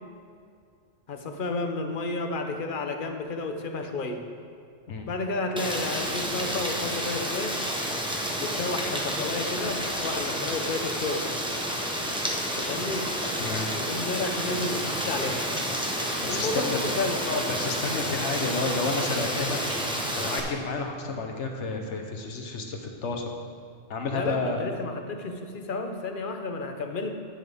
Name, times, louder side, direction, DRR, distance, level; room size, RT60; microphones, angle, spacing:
voice 1, 1.1-4.3 5.1-7.6 8.4-11.3 12.5-13.1 13.7-15.4 16.2-17.5 24.1-27.1, left 3 dB, 50° left, 5 dB, 0.9 m, -31 dB
Rain, 5.6-20.4, equal, 5° right, 0.9 m, -30 dB
voice 2, 13.4-13.8 16.2-16.8 17.5-19.6 20.1-23.2 23.9-24.7, left 3 dB, 70° left, 3 dB, 1.3 m, -31 dB
10.5 x 9.3 x 3.5 m, 2.3 s
omnidirectional pair, 1.3 m